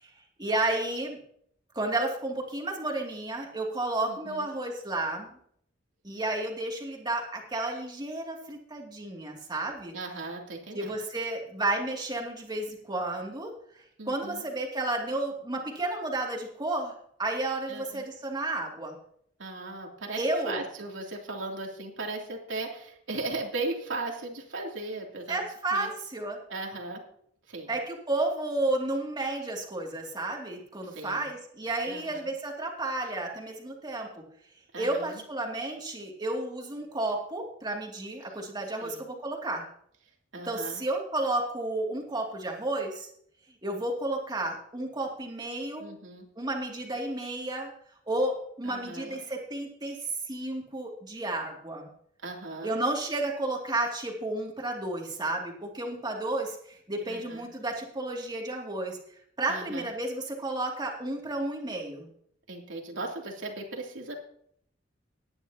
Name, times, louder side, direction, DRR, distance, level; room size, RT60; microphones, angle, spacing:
voice 1, 0.4-1.2 1.7-5.3 6.0-9.9 10.7-13.5 14.1-16.9 17.2-19.0 20.1-20.6 25.3-26.4 27.7-34.1 34.8-39.6 40.5-43.1 43.6-45.9 46.4-47.7 48.1-50.0 50.3-51.9 52.6-59.0 59.4-62.1, right 2 dB, 25° right, 0 dB, 2.5 m, -32 dB
voice 2, 4.0-4.5 9.9-10.9 14.0-14.4 17.7-18.0 19.4-25.4 25.7-25.9 26.5-27.0 27.5-27.7 30.8-31.3 31.9-32.3 34.7-35.2 38.8-39.0 40.3-40.8 45.8-46.3 48.6-49.2 52.2-52.8 57.1-57.5 59.5-59.9 62.5-64.2, right 2 dB, 80° right, 0 dB, 2.9 m, -37 dB
18.5 x 10.5 x 2.9 m, 0.66 s
head